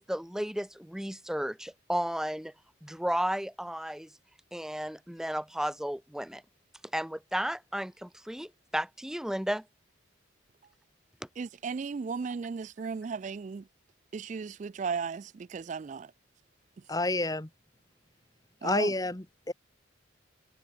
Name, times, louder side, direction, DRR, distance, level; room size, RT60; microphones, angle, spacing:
voice 1, 0.0-2.5 2.8-4.1 4.5-6.4 6.9-9.6, equal, 5° right, 0.7 m, -33 dB
voice 2, 11.4-13.7 14.1-16.1 18.6-18.9, right 5 dB, 40° right, 0.3 m, -35 dB
voice 3, 16.9-17.5 18.6-19.5, left 2 dB, 20° left, 1.2 m, -29 dB
head